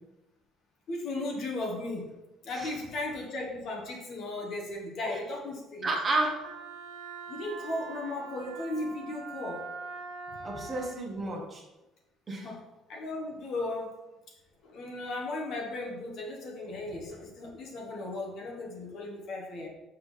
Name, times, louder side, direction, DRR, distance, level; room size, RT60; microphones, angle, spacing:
voice 1, 0.9-2.2 2.4-5.9 7.3-9.6 10.4-10.6 12.3-12.6 12.9-13.9 14.6-19.7, left 2 dB, 50° left, -1 dB, 1.3 m, -36 dB
voice 2, 5.8-6.3 10.4-11.6 12.3-12.5, right 2 dB, 20° right, -2 dB, 1.1 m, -31 dB
Wind instrument woodwind instrument, 6.4-11.0, right 4 dB, 75° right, 1.1 m, -43 dB
7.2 x 6.0 x 3.3 m, 1.0 s
cardioid pair, 175°, 0 cm